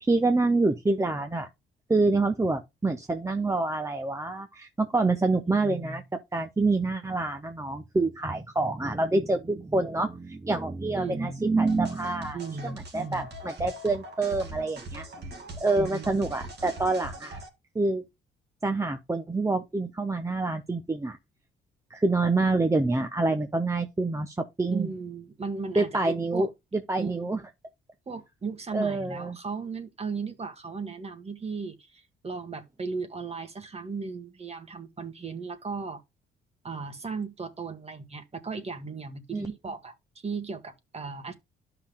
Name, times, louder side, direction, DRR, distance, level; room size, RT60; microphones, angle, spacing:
voice 1, 0.0-1.5 1.9-6.0 6.3-15.1 15.6-17.4 17.7-18.0 18.6-21.2 21.9-24.9 25.8-26.5 26.7-27.4 28.7-29.4 39.3-39.5, right 3 dB, 15° right, 0.9 m, -27 dB
voice 2, 5.5-6.0 11.0-11.4 12.3-13.3 15.8-16.1 24.7-26.5 27.0-27.4 28.1-36.0 36.6-41.3, right 4 dB, 30° right, 1.7 m, -36 dB
sound 1, 11.7-17.5, right 1 dB, 60° right, 2.5 m, -42 dB
12.5 x 5.9 x 2.2 m
cardioid pair, 90°, 20 cm